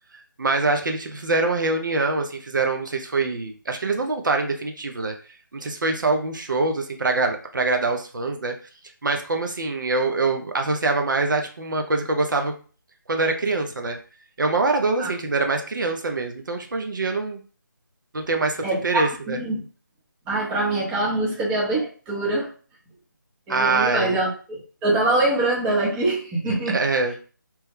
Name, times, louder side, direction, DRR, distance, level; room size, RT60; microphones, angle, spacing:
voice 1, 0.4-5.1 5.5-8.6 9.0-12.5 13.1-14.0 14.4-17.4 18.1-19.4 23.5-24.2 26.7-27.1, right 3 dB, 65° right, 4 dB, 0.6 m, -24 dB
voice 2, 18.6-19.0 19.3-19.6 20.3-22.5 23.5-26.8, right 2 dB, 10° right, -4 dB, 0.6 m, -24 dB
2.9 x 2.2 x 3.5 m, 0.39 s
figure-of-eight pair, 160°, 11 cm